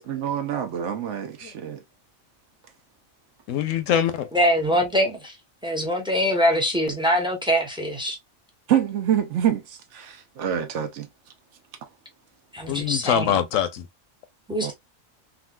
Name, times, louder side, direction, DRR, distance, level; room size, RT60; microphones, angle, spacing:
voice 1, 0.0-1.8 8.7-11.1 14.6-14.7, right 10 dB, 65° right, 0.9 m, -26 dB
voice 2, 3.5-4.3 12.7-13.9, left 9 dB, 75° left, 0.9 m, -24 dB
voice 3, 4.3-5.3 5.6-8.2 12.5-13.3 14.5-14.7, equal, 5° right, 0.5 m, -23 dB
3.8 x 2.3 x 2.2 m
omnidirectional pair, 1.4 m